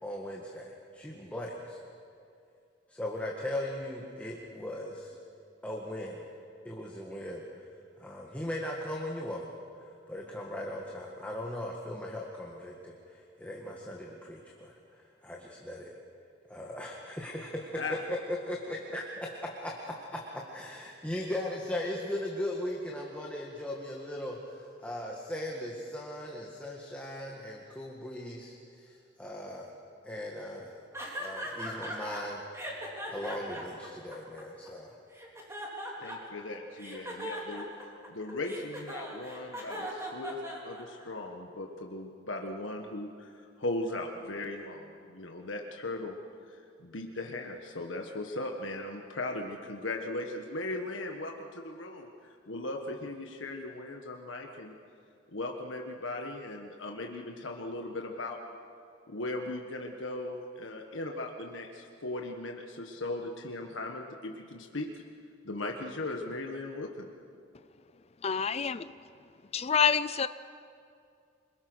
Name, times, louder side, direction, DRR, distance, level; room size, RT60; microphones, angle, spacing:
voice 1, 0.0-1.8 2.9-5.1 5.6-6.3 6.6-7.4 8.0-9.5 9.8-14.8 15.2-16.0 16.5-29.7 30.0-30.8 31.2-32.8 33.1-34.9, left 1 dB, 10° left, -2 dB, 1.9 m, -38 dB
sound 1, 30.9-32.2 32.5-34.7 35.1-36.4 36.8-41.1, equal, 15° right, 3.9 m, -39 dB
voice 2, 36.0-37.6 38.1-46.2 46.5-52.1 52.5-54.7 55.3-58.4 59.1-64.9 65.4-67.1, left 2 dB, 75° left, 2 dB, 1.6 m, -38 dB
voice 3, 68.2-68.9 69.5-70.3, left 6 dB, 35° left, 13 dB, 0.5 m, -27 dB
26.5 x 22.0 x 6.4 m, 2.5 s
head